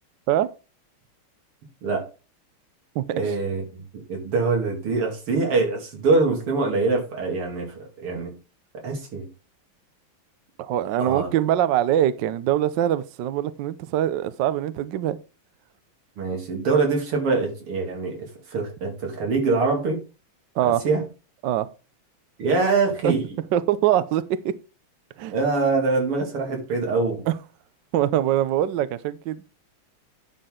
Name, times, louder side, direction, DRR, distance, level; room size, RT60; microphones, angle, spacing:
voice 1, 3.1-8.3 8.8-9.3 11.0-11.3 16.2-20.0 20.8-21.0 22.4-23.4 25.3-27.3, right 3 dB, 85° right, 3.4 m, -24 dB
voice 2, 10.6-15.2 20.6-20.8 21.4-21.7 23.0-23.1 23.5-24.5 25.2-25.3 27.3-27.4 27.9-29.4, right 12 dB, 70° right, 1.1 m, -23 dB
10.0 x 6.0 x 3.7 m
omnidirectional pair, 2.4 m